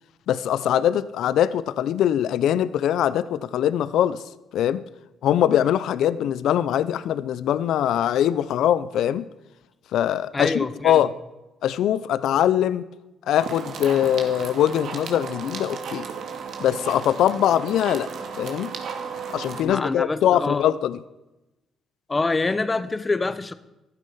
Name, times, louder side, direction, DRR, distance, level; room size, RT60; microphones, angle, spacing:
voice 1, 0.3-4.2 4.5-4.8 5.2-9.2 9.9-11.1 11.6-12.8 13.3-16.0 16.6-18.1 18.4-18.7 19.3-21.0, left 10 dB, 80° left, 16 dB, 0.6 m, -22 dB
voice 2, 10.3-11.1 19.6-20.7 22.1-23.5, left 3 dB, 25° left, 14 dB, 0.9 m, -25 dB
sound 1, 13.4-19.6, right 6 dB, 70° right, 2.2 m, -34 dB
14.0 x 12.5 x 5.5 m, 1.0 s
cardioid pair, 90°, 0 cm